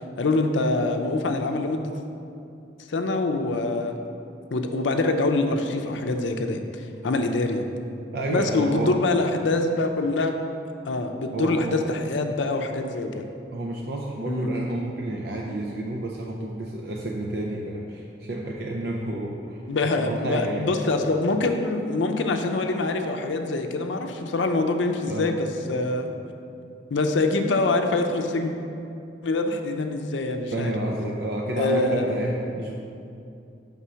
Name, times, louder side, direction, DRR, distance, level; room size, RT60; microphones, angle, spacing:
voice 1, 0.2-1.9 2.9-4.0 4.5-7.6 8.3-10.3 10.8-13.3 14.3-14.5 19.7-26.1 26.9-28.5 29.2-30.7 31.6-32.1, left 2 dB, 90° left, 5 dB, 0.5 m, -25 dB
voice 2, 8.1-9.0 11.3-11.8 13.5-19.6 20.0-20.7 25.1-25.4 30.5-32.7, right 1 dB, 60° right, -1 dB, 0.5 m, -30 dB
6.1 x 3.6 x 5.6 m, 2.6 s
head